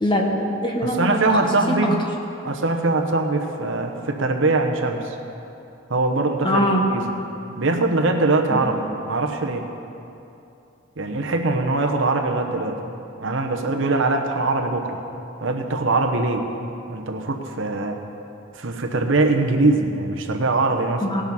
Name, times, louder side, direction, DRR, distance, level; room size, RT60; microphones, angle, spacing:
voice 1, 0.0-1.3 1.7-1.8 6.4-6.8 8.5-8.6 21.0-21.2, equal, 20° left, 1 dB, 1.1 m, -22 dB
voice 2, 0.8-2.0 2.4-5.2 5.9-7.1 7.6-9.7 11.0-12.8 13.2-15.0 15.4-16.5 16.9-18.0 18.6-21.0, right 2 dB, 65° right, 4 dB, 0.9 m, -22 dB
18.0 x 7.1 x 5.5 m, 2.8 s
head